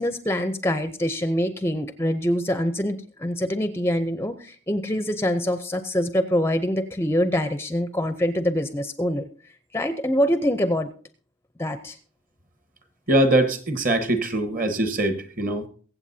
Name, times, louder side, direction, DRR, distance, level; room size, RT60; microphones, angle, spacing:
voice 1, 0.0-9.3 9.7-10.9 11.6-12.0, equal, 10° left, 10 dB, 0.5 m, -25 dB
voice 2, 13.1-15.6, right 1 dB, 40° right, 8 dB, 1.3 m, -22 dB
22.5 x 8.0 x 2.7 m, 0.43 s
head